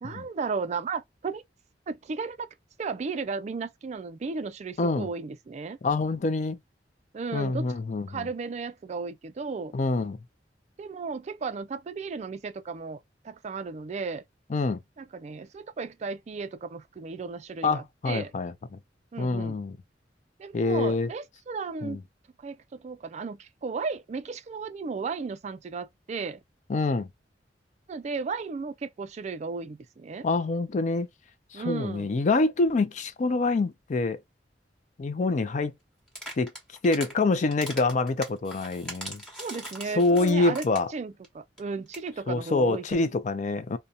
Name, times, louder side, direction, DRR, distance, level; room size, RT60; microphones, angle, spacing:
voice 1, 0.0-1.4 1.9-2.5 2.8-5.8 7.1-7.7 8.1-9.7 10.8-13.0 13.2-14.2 15.0-18.3 19.1-19.6 20.4-22.0 22.4-26.4 27.9-30.3 31.5-32.1 39.4-40.6 40.9-43.1, right 4 dB, 40° right, 0.3 m, -34 dB
voice 2, 4.8-5.1 5.8-6.6 7.3-8.3 9.7-10.2 14.5-14.8 17.6-18.5 19.2-19.8 20.5-21.1 21.8-22.0 26.7-27.1 30.2-31.1 31.5-34.2 35.0-35.7 36.4-36.5 36.8-39.2 39.9-40.9 42.3-43.8, left 3 dB, 45° left, 0.4 m, -26 dB
sound 1, 36.1-37.1 37.5-41.0 41.2-41.3 41.6-41.7 41.9-42.1, equal, 5° left, 1.3 m, -40 dB
2.7 x 2.1 x 2.2 m
head